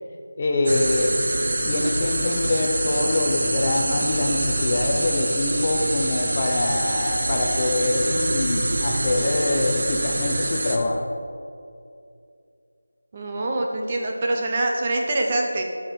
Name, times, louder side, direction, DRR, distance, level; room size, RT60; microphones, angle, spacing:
voice 1, 0.4-1.1 1.6-11.0, left 2 dB, 25° left, 1 dB, 0.8 m, -24 dB
sound 1, 0.7-10.8, right 1 dB, 40° right, 1.2 m, -25 dB
voice 2, 13.1-15.6, right 2 dB, 20° right, 1 dB, 0.6 m, -24 dB
13.0 x 6.3 x 5.3 m, 2.5 s
figure-of-eight pair, 175°, 0 cm